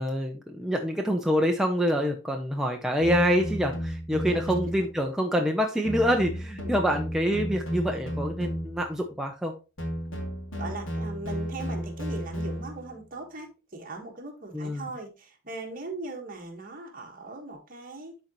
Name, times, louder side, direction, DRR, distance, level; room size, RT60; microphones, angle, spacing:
voice 1, 0.0-9.5 14.5-14.9, equal, ahead, 2 dB, 0.5 m, -26 dB
sound 1, 3.0-4.9 5.9-9.0 9.8-12.9, equal, 80° left, 2.3 m, -33 dB
voice 2, 10.5-18.2, right 2 dB, 40° right, 2 dB, 1.5 m, -39 dB
11.5 x 3.9 x 3.0 m, 0.31 s
head